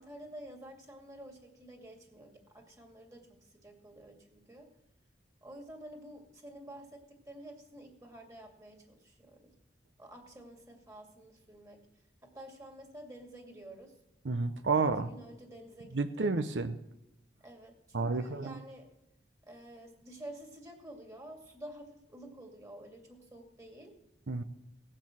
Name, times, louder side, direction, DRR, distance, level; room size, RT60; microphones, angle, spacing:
voice 1, 0.0-4.7 5.4-9.5 10.0-11.9 12.2-13.9 14.6-16.3 17.4-18.9 19.4-23.9, right 1 dB, 20° right, 2 dB, 2.3 m, -50 dB
voice 2, 14.2-15.1 15.9-16.7 17.9-18.6 24.3-24.4, right 4 dB, 75° right, 9 dB, 0.8 m, -30 dB
17.5 x 6.8 x 7.4 m, 0.90 s
head